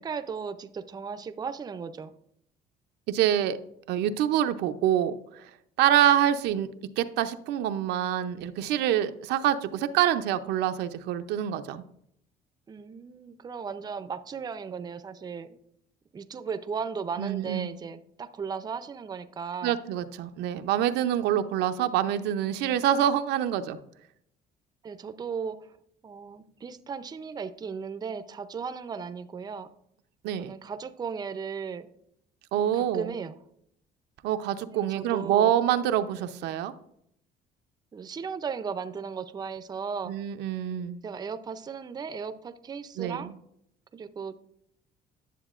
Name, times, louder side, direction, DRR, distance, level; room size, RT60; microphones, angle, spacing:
voice 1, 0.0-2.1 12.7-15.6 16.1-19.7 24.8-25.6 26.0-29.7 30.4-31.9 32.6-33.3 34.7-35.6 37.9-40.1 41.0-43.3 43.9-44.3, right 6 dB, 25° right, 11 dB, 0.5 m, -36 dB
voice 2, 3.1-3.6 3.9-5.4 5.8-6.7 7.0-11.8 17.2-17.7 19.6-23.8 30.2-30.5 32.5-33.1 34.2-36.7 40.1-41.0 43.0-43.3, right 11 dB, 85° right, 9 dB, 0.6 m, -26 dB
10.0 x 7.2 x 2.4 m, 0.72 s
cardioid pair, 110°, 17 cm